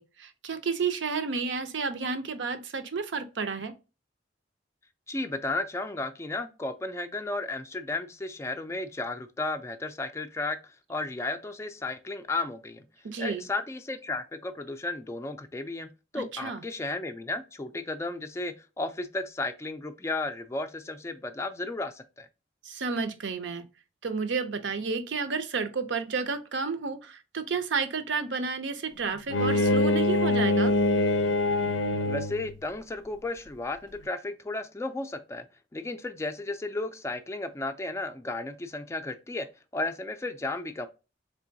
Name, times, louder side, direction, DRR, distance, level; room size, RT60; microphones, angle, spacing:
voice 1, 0.0-3.7 13.0-13.5 16.1-16.6 22.6-23.6 24.0-30.7, right 5 dB, 80° right, 0.6 m, -31 dB
voice 2, 5.1-12.8 13.2-22.3 32.0-35.4 35.7-40.9, left 2 dB, 15° left, 0.3 m, -34 dB
Bowed string instrument, 29.3-32.5, left 2 dB, 85° left, 0.5 m, -24 dB
3.7 x 3.3 x 2.6 m
head